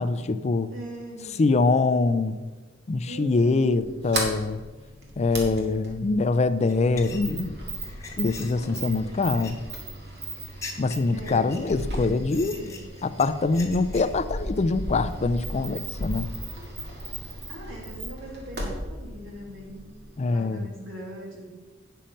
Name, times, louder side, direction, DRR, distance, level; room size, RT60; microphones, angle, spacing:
voice 1, 0.0-0.7 1.4-2.4 2.9-4.6 5.2-7.6 8.2-9.6 10.8-12.5 13.0-16.3 20.2-20.7, left 3 dB, 35° left, 12 dB, 0.4 m, -24 dB
voice 2, 0.7-1.9 3.1-3.9 8.5-9.2 11.1-12.8 14.9-15.2 17.5-19.9 20.2-21.4, equal, 80° right, -2 dB, 2.6 m, -41 dB
Sliding door, 3.8-20.2, right 1 dB, 55° right, 1.8 m, -36 dB
sound 1, 6.7-14.2, left 4 dB, 15° left, 1.2 m, -43 dB
8.8 x 5.6 x 5.2 m, 1.3 s
head